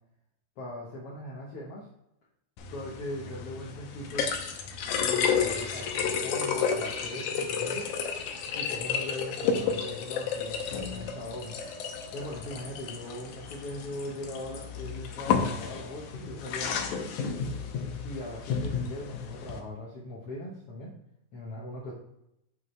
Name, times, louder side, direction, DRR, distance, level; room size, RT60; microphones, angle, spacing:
voice 1, 0.6-1.9 2.7-4.3 5.0-7.9 8.5-11.5 12.1-17.1 18.0-20.9 21.3-21.9, left 1 dB, 55° left, -4 dB, 2.0 m, -40 dB
sound 1, 2.6-19.6, left 6 dB, 85° left, 2.3 m, -32 dB
8.0 x 5.7 x 3.2 m, 0.81 s
omnidirectional pair, 3.5 m